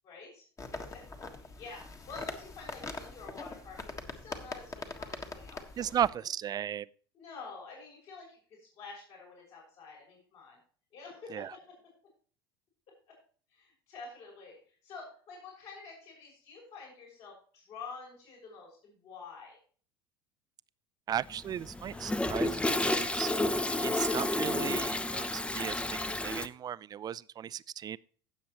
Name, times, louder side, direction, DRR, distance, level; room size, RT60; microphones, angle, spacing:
voice 1, 0.0-0.4 0.7-1.0 1.4-6.0 7.1-10.6 10.9-11.8 13.1-13.2 13.5-19.6, left 4 dB, 55° left, 6.1 m, -48 dB
sound 1, 0.6-6.1, left 3 dB, 25° left, 1.6 m, -43 dB
voice 2, 5.8-6.9 11.3-11.5 21.1-23.3 23.8-28.0, right 10 dB, 30° right, 0.4 m, -35 dB
Toilet flush, 21.2-26.5, left 2 dB, 10° left, 0.6 m, -31 dB
16.5 x 7.2 x 3.1 m
hypercardioid pair, 75°, 13 cm